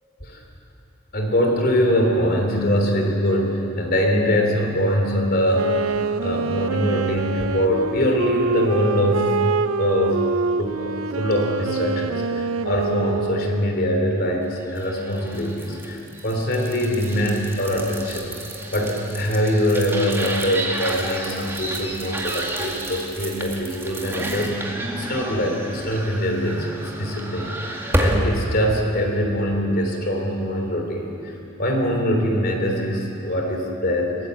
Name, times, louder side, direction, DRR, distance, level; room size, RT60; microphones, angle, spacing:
voice 1, 1.1-9.4 9.8-10.2 10.6-31.3 31.6-34.2, equal, 45° left, 2 dB, 3.4 m, -23 dB
Wind instrument woodwind instrument, 5.5-13.8, right 4 dB, 75° right, 0.6 m, -25 dB
sound 1, 14.7-28.4, right 1 dB, 10° right, 2.2 m, -30 dB
23.0 x 19.5 x 8.1 m, 2.9 s
head